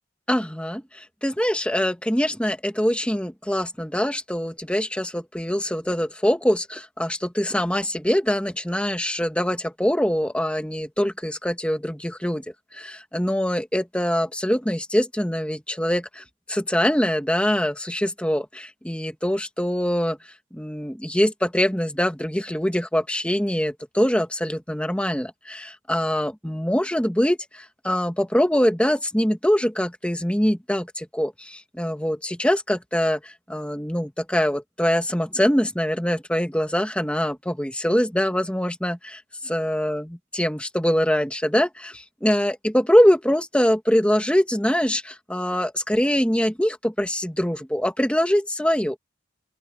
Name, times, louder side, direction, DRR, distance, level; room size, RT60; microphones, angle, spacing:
voice 1, 0.3-12.4 12.7-20.2 20.5-40.1 40.3-49.0, equal, 5° left, 1.7 m, -23 dB
open air
head